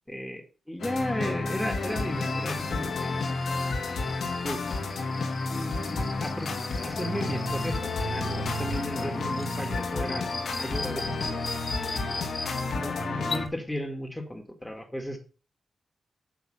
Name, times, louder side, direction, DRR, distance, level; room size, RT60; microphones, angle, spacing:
voice 1, 0.1-3.2 4.4-4.7 5.5-6.5 6.8-10.3 10.6-11.4 11.8-12.0 12.7-15.2, left 1 dB, 10° left, 1 dB, 4.0 m, -35 dB
sound 1, 0.8-13.5, left 3 dB, 75° left, 2.4 m, -31 dB
sound 2, 1.6-12.6, left 3 dB, 35° left, 2.9 m, -41 dB
sound 3, 9.3-9.5 11.1-11.2 11.7-12.0 13.1-13.5, left 5 dB, 60° left, 1.5 m, -38 dB
8.0 x 7.6 x 5.8 m, 0.34 s
cardioid pair, 55°, 0 cm